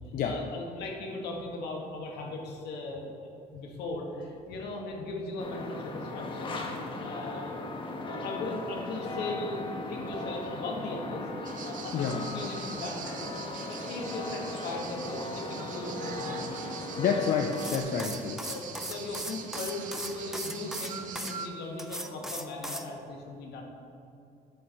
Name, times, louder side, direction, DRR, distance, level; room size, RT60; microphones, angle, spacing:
voice 1, 0.2-6.6 7.0-7.6 8.1-11.3 11.6-13.3 13.6-16.6 18.5-23.6, left 2 dB, 75° left, 0 dB, 1.3 m, -38 dB
sound 1, 5.4-17.8, left 2 dB, 30° left, 0.8 m, -37 dB
sound 2, 11.5-21.5, right 6 dB, 50° right, 0.6 m, -42 dB
voice 2, 17.0-18.4, left 7 dB, 55° left, 3 dB, 0.5 m, -28 dB
sound 3, 17.5-21.3 21.8-22.9, equal, 5° right, 0.4 m, -38 dB
7.5 x 4.1 x 4.4 m, 2.6 s
cardioid pair, 110°, 17 cm